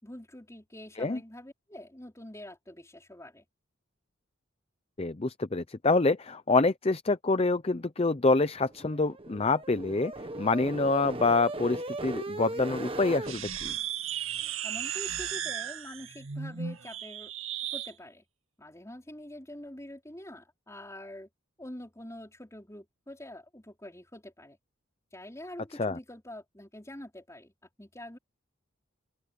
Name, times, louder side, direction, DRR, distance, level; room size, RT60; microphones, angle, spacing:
voice 1, 0.0-3.4 14.6-17.3 17.7-18.2 18.6-21.3 21.6-24.6 25.1-27.5 27.8-28.2, left 1 dB, 15° left, 4.3 m, -45 dB
voice 2, 5.0-10.1 10.4-13.7 25.8-26.0, left 3 dB, 30° left, 0.6 m, -26 dB
sound 1, 8.7-13.3, right 2 dB, 30° right, 1.5 m, -38 dB
sound 2, 13.2-17.9, right 9 dB, 90° right, 2.0 m, -35 dB
open air
head